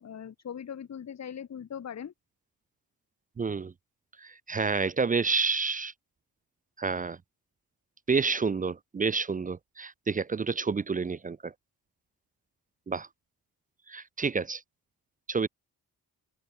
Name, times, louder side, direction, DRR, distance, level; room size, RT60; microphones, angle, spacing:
voice 1, 0.0-2.1, left 8 dB, 45° left, 1.2 m, -40 dB
voice 2, 3.4-3.7 4.2-5.9 6.8-7.2 8.1-11.5 12.9-13.1 13.9-14.6 15.3-15.5, right 4 dB, 25° right, 0.4 m, -29 dB
open air
cardioid pair, 110°, 38 cm